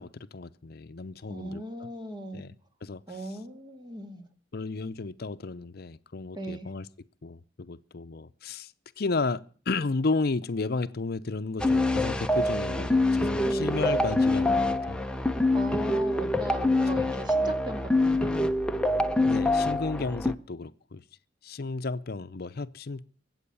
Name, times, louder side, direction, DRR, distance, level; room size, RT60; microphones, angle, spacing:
voice 1, 0.0-1.9 2.3-2.5 2.8-3.0 4.5-6.9 7.2-15.0 19.2-21.0 21.4-23.0, left 3 dB, 60° left, 0.6 m, -33 dB
voice 2, 1.3-2.4 3.1-4.3 6.3-6.7 13.3-13.8 15.5-18.5, right 1 dB, 25° right, 2.2 m, -38 dB
sound 1, 11.6-20.3, left 2 dB, 5° left, 0.7 m, -25 dB
23.5 x 7.9 x 6.9 m
head